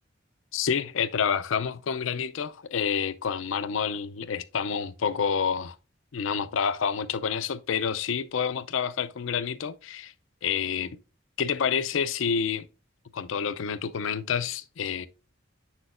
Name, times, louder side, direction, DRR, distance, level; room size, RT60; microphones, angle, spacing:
voice 1, 0.5-5.8 6.1-10.1 10.4-10.9 11.4-12.7 13.1-15.1, left 7 dB, 75° left, 0.4 m, -28 dB
7.8 x 6.0 x 2.5 m
head